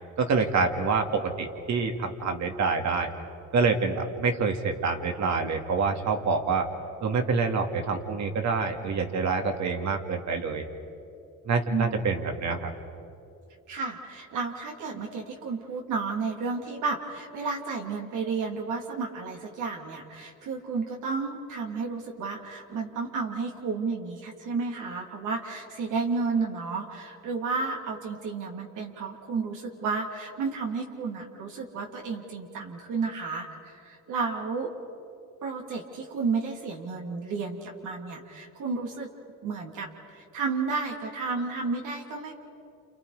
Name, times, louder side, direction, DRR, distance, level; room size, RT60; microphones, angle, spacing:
voice 1, 0.2-3.1 3.5-6.7 7.0-10.6 11.5-12.7, right 4 dB, 65° right, 4 dB, 2.5 m, -26 dB
voice 2, 11.7-12.1 13.7-34.7 35.4-39.1 39.4-42.4, right 4 dB, 85° right, 0 dB, 3.0 m, -32 dB
29.5 x 28.5 x 5.0 m, 2.6 s
cardioid pair, 90°, 30 cm